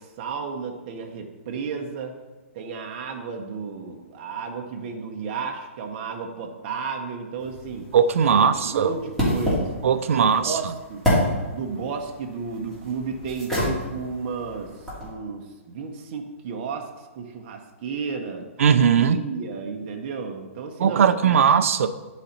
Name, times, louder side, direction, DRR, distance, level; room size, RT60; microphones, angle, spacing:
voice 1, 0.0-2.2 2.5-7.9 8.3-9.7 10.1-10.6 10.9-11.1 11.5-18.5 19.0-21.4, right 5 dB, 40° right, 2 dB, 0.9 m, -33 dB
sound 1, 7.4-15.1, equal, 5° left, 2.4 m, -29 dB
voice 2, 7.9-8.9 9.8-10.6 18.6-19.2 20.8-21.9, right 7 dB, 65° right, 12 dB, 0.5 m, -19 dB
9.8 x 4.1 x 4.3 m, 1.2 s
hypercardioid pair, 150°, 8 cm